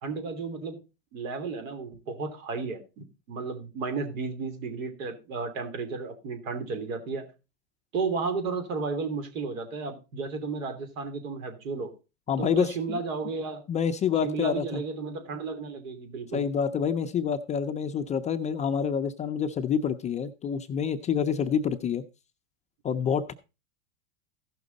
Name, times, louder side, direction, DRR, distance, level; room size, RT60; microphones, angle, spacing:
voice 1, 0.0-0.8 1.1-7.2 7.9-11.9 12.4-13.6 14.2-16.4, right 4 dB, 75° right, 7 dB, 3.0 m, -33 dB
voice 2, 12.3-13.0 13.7-14.8 16.3-22.0 22.8-23.3, left 7 dB, 20° left, 7 dB, 0.4 m, -27 dB
15.0 x 6.2 x 4.0 m, 0.29 s
supercardioid pair, 130°, 40 cm